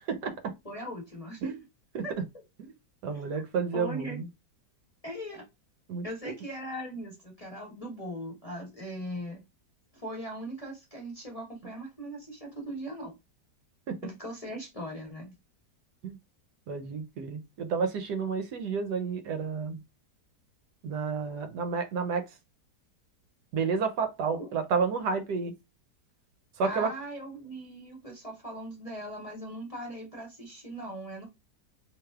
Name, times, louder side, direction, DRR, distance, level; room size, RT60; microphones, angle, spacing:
voice 1, 0.6-1.4 2.0-2.1 3.3-3.4 3.7-4.2 5.0-5.4 6.0-9.4 9.9-13.1 14.0-15.4 24.4-24.5 26.6-31.3, equal, 25° left, 1.0 m, -39 dB
voice 2, 3.0-4.3 5.9-6.0 13.9-14.0 16.0-16.2 16.7-19.8 20.8-22.3 23.5-25.5 26.6-26.9, right 5 dB, 75° right, 1.2 m, -30 dB
3.3 x 3.0 x 2.3 m
omnidirectional pair, 1.9 m